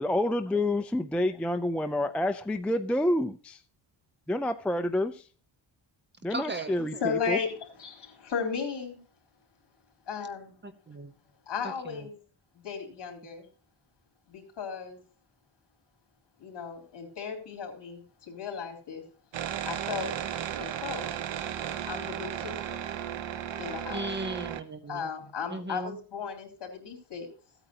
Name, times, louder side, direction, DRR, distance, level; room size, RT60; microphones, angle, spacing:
voice 1, 0.0-3.6 4.3-5.2 6.2-7.4, left 1 dB, 5° left, 0.4 m, -28 dB
voice 2, 6.3-6.7 10.6-11.1 11.8-12.1 23.9-25.1 25.5-26.0, right 2 dB, 25° right, 0.8 m, -37 dB
voice 3, 7.0-9.0 10.1-10.6 11.5-12.1 12.5-13.5 14.3-15.0 16.4-19.0 19.6-20.1 20.6-21.2 21.9-22.9 23.6-24.1 24.8-27.3, left 6 dB, 60° left, 3.6 m, -35 dB
sound 1, 19.3-24.6, right 9 dB, 70° right, 0.9 m, -35 dB
15.5 x 8.9 x 2.8 m
wide cardioid pair, 160°, 46 cm